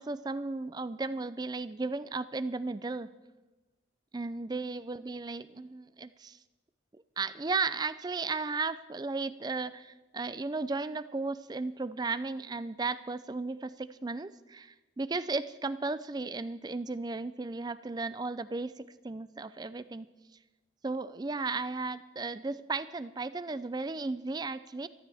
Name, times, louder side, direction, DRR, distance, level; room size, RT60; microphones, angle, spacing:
voice 1, 0.0-3.1 4.1-6.4 6.9-20.1 20.8-24.9, right 3 dB, 20° right, 15 dB, 0.4 m, -35 dB
23.5 x 13.0 x 3.5 m, 1.2 s
head